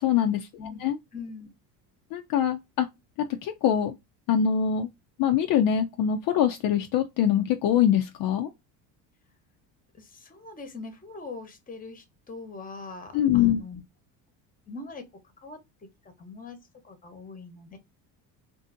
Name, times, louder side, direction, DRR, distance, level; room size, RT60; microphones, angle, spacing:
voice 1, 0.0-0.5 0.8-1.0 2.1-2.9 3.4-4.0 4.3-4.9 5.2-8.5 13.1-13.6, left 9 dB, 60° left, 0.5 m, -23 dB
voice 2, 1.1-1.5 9.9-13.8 14.7-15.6 16.0-16.6 16.8-17.8, left 4 dB, 20° left, 0.9 m, -42 dB
2.6 x 2.5 x 2.5 m
supercardioid pair, 100°, 40 cm